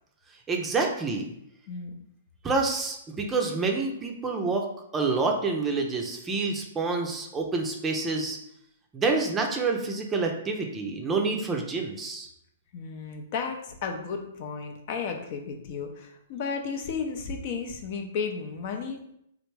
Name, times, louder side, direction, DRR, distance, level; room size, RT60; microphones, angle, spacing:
voice 1, 0.5-1.2 2.4-4.6 4.9-8.4 8.9-12.3, right 3 dB, 15° right, 2 dB, 0.5 m, -27 dB
voice 2, 12.7-19.2, left 5 dB, 50° left, 4 dB, 0.5 m, -33 dB
3.2 x 2.5 x 3.2 m, 0.74 s
hypercardioid pair, 120°, 0 cm